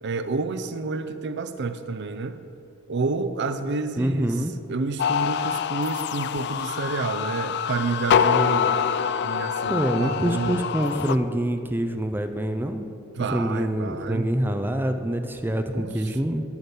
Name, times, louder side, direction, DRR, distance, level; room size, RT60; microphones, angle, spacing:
voice 1, 0.0-2.4 2.9-8.9 9.2-10.6 13.1-14.4 15.7-16.1, right 3 dB, 55° right, 9 dB, 0.5 m, -29 dB
voice 2, 4.0-4.5 9.7-12.9 13.3-16.4, right 1 dB, 10° right, 7 dB, 0.4 m, -25 dB
sound 1, 5.0-11.2, left 7 dB, 55° left, 0.4 m, -25 dB
10.5 x 5.9 x 8.1 m, 2.8 s
head